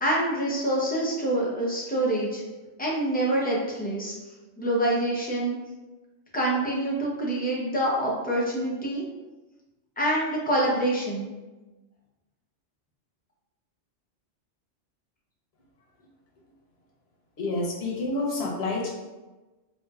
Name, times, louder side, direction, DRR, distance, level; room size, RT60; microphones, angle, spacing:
voice 1, 0.0-2.4 2.8-4.2 4.6-5.6 6.3-9.0 10.0-11.3, right 1 dB, 10° left, -5 dB, 0.6 m, -26 dB
voice 2, 17.4-18.9, left 2 dB, 60° left, -2 dB, 1.0 m, -28 dB
4.4 x 2.5 x 2.3 m, 1.2 s
omnidirectional pair, 1.2 m